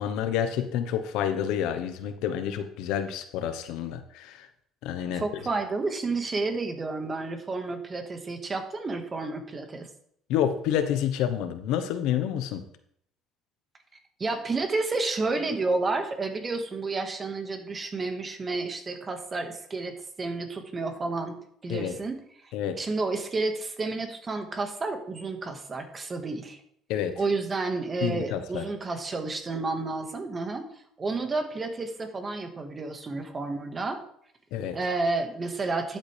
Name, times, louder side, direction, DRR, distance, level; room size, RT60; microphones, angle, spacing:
voice 1, 0.0-4.5 4.8-5.2 10.3-12.6 21.7-21.9 22.5-22.8 26.9-27.1 28.0-28.6 34.5-34.8, left 9 dB, 80° left, 9 dB, 1.1 m, -28 dB
voice 2, 5.1-9.9 14.2-22.2 22.8-26.6 27.1-30.7 31.0-34.0 34.7-36.0, right 3 dB, 30° right, 6 dB, 1.7 m, -30 dB
12.0 x 8.1 x 3.5 m, 0.67 s
supercardioid pair, 95°, 0 cm